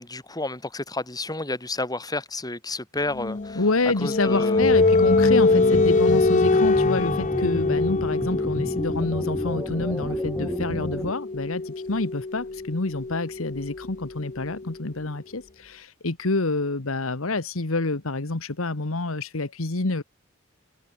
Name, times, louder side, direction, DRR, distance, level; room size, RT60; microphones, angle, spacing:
voice 1, 0.0-3.6 4.0-4.7, left 2 dB, 20° left, 4.4 m, -31 dB
sound 1, 3.1-14.7, left 3 dB, 35° left, 0.7 m, -23 dB
voice 2, 3.5-20.0, left 2 dB, 85° left, 1.5 m, -28 dB
sound 2, 4.6-11.1, equal, 10° right, 1.3 m, -32 dB
head